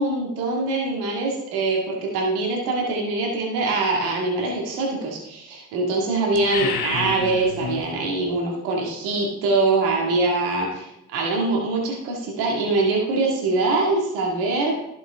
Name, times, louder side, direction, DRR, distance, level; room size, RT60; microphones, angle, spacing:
voice 1, 0.0-14.8, right 3 dB, 90° right, -1 dB, 2.0 m, -23 dB
sound 1, 6.3-7.9, left 6 dB, 85° left, 1.1 m, -29 dB
11.5 x 7.6 x 3.6 m, 0.83 s
supercardioid pair, 50°, 36 cm